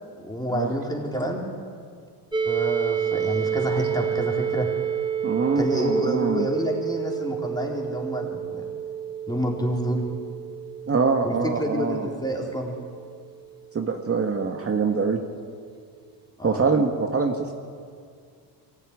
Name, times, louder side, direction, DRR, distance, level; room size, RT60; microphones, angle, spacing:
voice 1, 0.2-1.5 2.5-4.7 5.6-8.6 9.3-10.0 11.2-12.8 16.4-16.6, equal, 10° left, 0 dB, 4.0 m, -28 dB
sound 1, 2.3-14.0, right 8 dB, 10° right, 1.8 m, -30 dB
voice 2, 5.2-6.5 10.9-12.1 13.7-15.2 16.4-17.5, right 4 dB, 35° right, 3 dB, 1.6 m, -24 dB
23.5 x 15.5 x 9.8 m, 2.2 s
cardioid pair, 120°, 42 cm